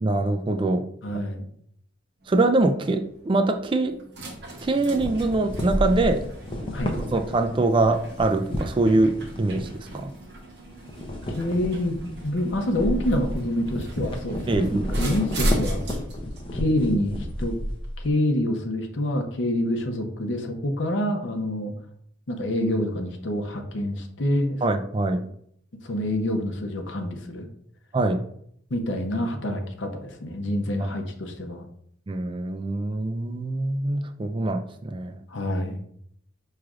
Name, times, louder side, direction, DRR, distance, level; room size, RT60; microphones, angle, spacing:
voice 1, 0.0-0.8 2.3-4.0 4.6-6.2 7.1-10.1 14.5-14.9 24.6-25.2 27.9-28.2 32.1-35.2, right 2 dB, 25° right, 7 dB, 0.3 m, -23 dB
voice 2, 1.0-1.4 6.7-6.9 11.4-11.9 12.2-14.7 15.0-15.8 16.5-17.5 18.0-21.7 22.3-24.6 25.8-27.5 28.7-31.6 35.3-35.8, left 1 dB, 70° left, 4 dB, 0.7 m, -27 dB
sound 1, 2.2-17.9, right 1 dB, 55° right, 0.9 m, -36 dB
sound 2, 4.9-10.4 10.7-18.1, equal, 25° left, 0.5 m, -32 dB
6.0 x 3.2 x 2.4 m, 0.68 s
head